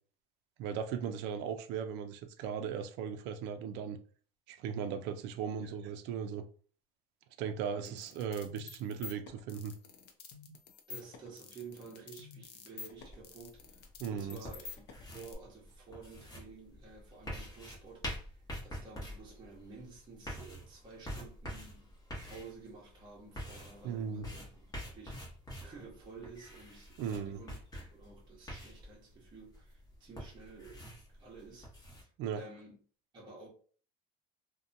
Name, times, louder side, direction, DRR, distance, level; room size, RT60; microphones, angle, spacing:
voice 1, 0.6-4.0 4.5-6.4 7.4-9.7 14.0-14.4 23.8-24.3 27.0-27.4 32.2-32.4, right 7 dB, 65° right, 0.4 m, -37 dB
sound 1, 7.9-15.4, left 5 dB, 60° left, 0.5 m, -49 dB
voice 2, 10.9-13.8 14.1-21.9 22.2-25.2 25.6-27.5 27.9-30.9 31.2-31.7 32.0-32.8 33.1-33.5, right 4 dB, 25° right, 0.8 m, -52 dB
sound 2, 13.0-32.0, equal, 20° left, 0.9 m, -47 dB
2.7 x 2.2 x 2.6 m
cardioid pair, 135°, 20 cm